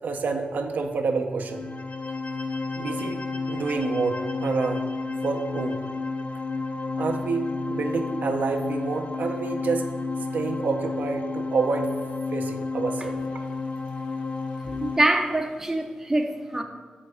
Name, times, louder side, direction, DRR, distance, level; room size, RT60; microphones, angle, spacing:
voice 1, 0.0-1.7 2.8-3.2 3.5-4.9 5.2-5.8 7.0-9.9 10.3-11.9 12.3-13.2, right 4 dB, 75° right, 4 dB, 0.7 m, -28 dB
sound 1, 1.4-15.0, left 3 dB, 50° left, 0.4 m, -31 dB
voice 2, 14.6-16.6, right 1 dB, 15° right, 3 dB, 0.6 m, -25 dB
6.7 x 5.4 x 4.8 m, 1.5 s
wide cardioid pair, 105°, 3 cm